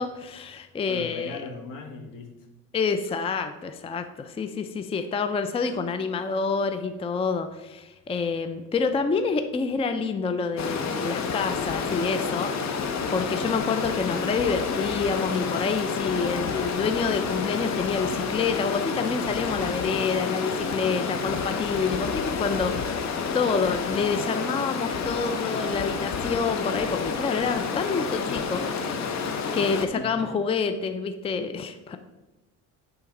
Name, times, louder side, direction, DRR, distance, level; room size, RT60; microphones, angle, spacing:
voice 1, 0.0-1.4 2.7-12.8 13.1-22.7 23.3-28.6 29.5-32.0, left 5 dB, 15° left, 8 dB, 0.4 m, -28 dB
voice 2, 0.9-2.5 3.0-3.1 22.9-23.0 29.9-30.3, left 3 dB, 70° left, 5 dB, 1.4 m, -39 dB
Stream, 10.6-29.9, left 5 dB, 50° left, 0.8 m, -29 dB
8.2 x 4.0 x 5.3 m, 1.1 s
cardioid pair, 120°, 34 cm